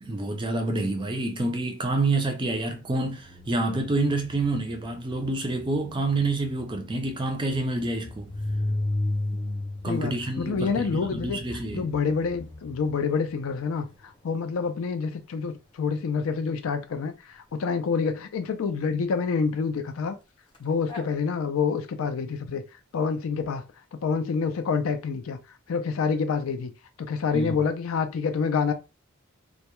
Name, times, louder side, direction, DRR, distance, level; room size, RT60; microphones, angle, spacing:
voice 1, 0.0-8.3 9.8-11.9 27.3-27.6, right 2 dB, 25° right, 0.4 m, -28 dB
sound 1, 2.8-14.4 20.5-20.6 20.9-21.1, left 1 dB, 25° left, 0.6 m, -36 dB
voice 2, 9.9-11.4 11.7-20.2 20.6-22.6 22.9-23.6 23.9-25.4 25.7-26.7 27.0-28.7, left 5 dB, 80° left, 0.4 m, -27 dB
2.2 x 2.0 x 2.9 m
head